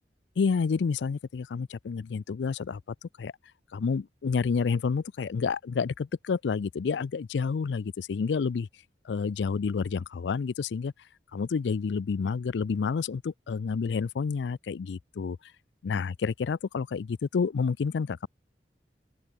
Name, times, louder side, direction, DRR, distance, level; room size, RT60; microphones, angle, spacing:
voice 1, 0.4-3.3 3.7-8.7 9.0-10.9 11.3-15.4 15.8-18.3, left 5 dB, 85° left, 0.4 m, -29 dB
open air
head